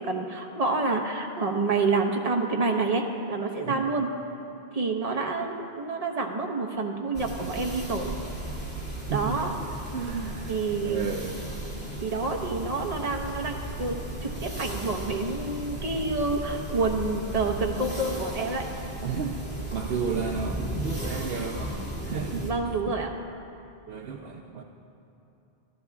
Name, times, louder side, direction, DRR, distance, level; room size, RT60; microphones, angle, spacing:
voice 1, 0.0-4.1 4.7-8.1 9.1-9.8 10.5-11.1 12.0-18.6 22.4-23.1, right 3 dB, 40° right, 1 dB, 1.1 m, -28 dB
sound 1, 7.1-22.5, right 1 dB, 10° left, 2.4 m, -35 dB
voice 2, 9.1-9.5 9.9-10.6 10.8-11.4 19.0-19.4 19.7-21.8 22.0-22.5 23.9-24.6, right 6 dB, 70° right, 2 dB, 0.9 m, -32 dB
23.5 x 14.5 x 2.4 m, 2.9 s
omnidirectional pair, 1.0 m